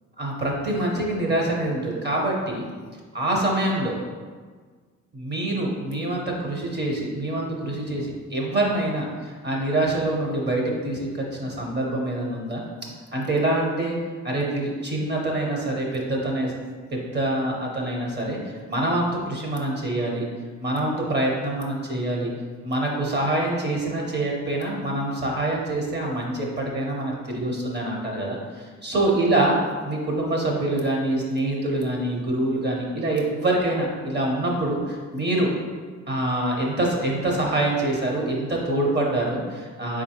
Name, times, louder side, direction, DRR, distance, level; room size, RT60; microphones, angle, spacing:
voice 1, 0.2-2.7 3.1-3.9 5.1-12.6 13.1-14.0 14.2-16.5 16.9-18.4 18.7-20.2 20.6-22.3 22.6-29.6 29.8-35.5 36.1-40.0, right 1 dB, 35° right, -1 dB, 1.0 m, -25 dB
4.2 x 3.7 x 2.9 m, 1.5 s
cardioid pair, 90°, 30 cm